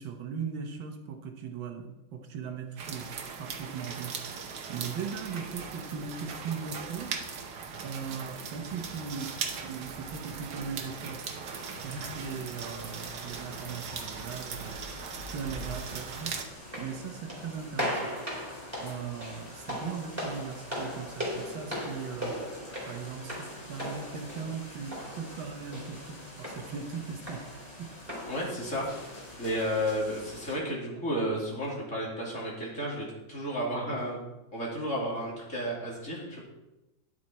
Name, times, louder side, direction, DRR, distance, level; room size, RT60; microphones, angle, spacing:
voice 1, 0.0-3.1 3.4-4.2 4.7-7.2 7.8-9.3 9.6-11.2 11.8-14.8 15.3-16.3 16.8-18.1 18.8-22.5 22.9-27.4 27.8-27.9, right 6 dB, 80° right, 4 dB, 1.8 m, -38 dB
sound 1, 2.8-16.4, right 5 dB, 60° right, 1.5 m, -39 dB
sound 2, 11.5-30.6, left 1 dB, 80° left, 4.3 m, -48 dB
sound 3, 16.6-29.6, equal, 5° right, 3.5 m, -39 dB
voice 2, 28.3-29.1 29.4-34.2 34.5-36.4, equal, 40° left, -4 dB, 3.1 m, -32 dB
10.5 x 7.7 x 4.3 m, 0.99 s
omnidirectional pair, 2.1 m